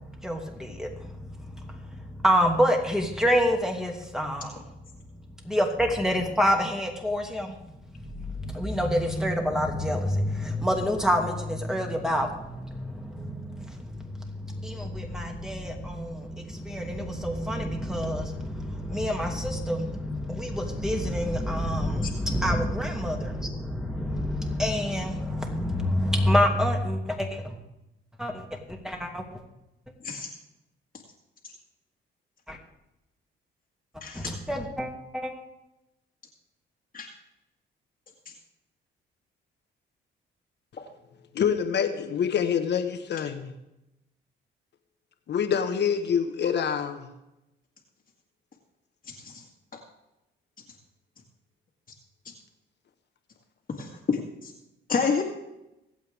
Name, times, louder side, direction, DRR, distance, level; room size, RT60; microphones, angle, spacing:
voice 1, 0.2-1.8 2.1-4.6 5.4-7.5 8.2-27.5 28.2-29.4 32.5-32.6 34.1-35.3, equal, 5° right, 2.5 m, -27 dB
voice 2, 34.0-34.3 36.9-37.1 49.1-49.4 53.8-54.5 54.9-55.2, left 5 dB, 45° left, 2.0 m, -29 dB
voice 3, 41.3-43.5 45.3-47.1, left 7 dB, 60° left, 1.5 m, -26 dB
24.0 x 8.2 x 3.6 m
cardioid pair, 90°, 20 cm